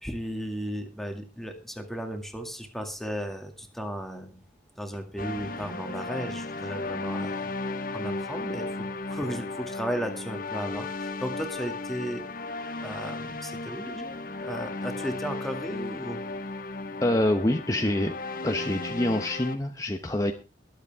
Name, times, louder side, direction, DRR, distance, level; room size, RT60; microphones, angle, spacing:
voice 1, 0.0-4.4 4.8-7.4 7.9-12.3 12.8-16.2, equal, ahead, 4 dB, 2.2 m, -35 dB
sound 1, 5.2-19.6, left 3 dB, 50° left, 1.3 m, -35 dB
voice 2, 17.0-18.1 18.4-20.3, left 1 dB, 20° left, 4 dB, 0.9 m, -26 dB
22.0 x 8.3 x 3.6 m, 0.31 s
head